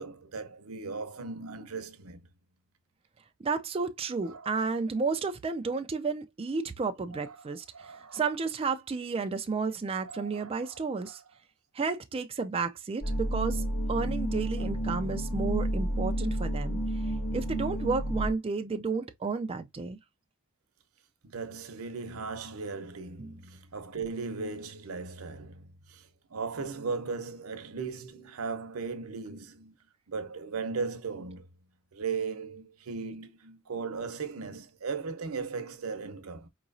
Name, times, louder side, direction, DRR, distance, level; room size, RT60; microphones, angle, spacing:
voice 1, 0.0-2.2 4.3-4.7 7.1-7.4 7.7-8.2 10.0-10.7 11.1-11.2 21.2-26.0 26.3-29.7 30.1-31.5 31.9-36.5, right 4 dB, 85° right, 0.7 m, -37 dB
voice 2, 3.4-7.6 8.1-11.2 11.7-16.8 17.3-20.0 23.2-23.4, right 4 dB, 25° right, 0.3 m, -32 dB
sound 1, 13.0-18.3, right 1 dB, 70° left, 1.2 m, -30 dB
4.6 x 3.0 x 2.6 m
head